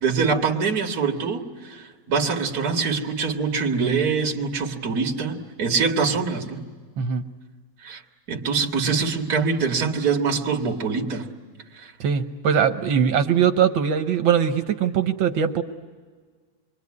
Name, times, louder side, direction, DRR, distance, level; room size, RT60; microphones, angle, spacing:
voice 1, 0.0-6.6 7.8-8.0 8.3-11.3 11.7-11.9, right 5 dB, 50° right, 2 dB, 2.3 m, -24 dB
voice 2, 12.0-15.6, right 8 dB, 80° right, 7 dB, 1.7 m, -21 dB
27.0 x 22.5 x 9.6 m, 1.5 s
omnidirectional pair, 2.1 m